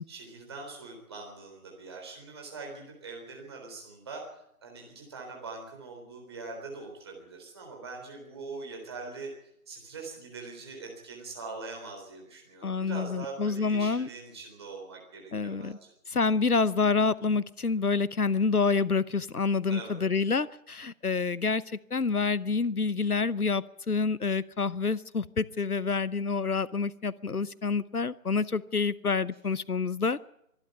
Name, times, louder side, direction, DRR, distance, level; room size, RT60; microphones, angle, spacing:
voice 1, 0.1-9.3 9.7-15.9 19.7-20.0, right 3 dB, 15° right, 0 dB, 3.9 m, -43 dB
voice 2, 12.6-14.1 15.3-15.8 16.1-30.2, left 4 dB, 75° left, 19 dB, 0.9 m, -28 dB
25.0 x 11.5 x 9.3 m, 0.77 s
figure-of-eight pair, 160°, 45 cm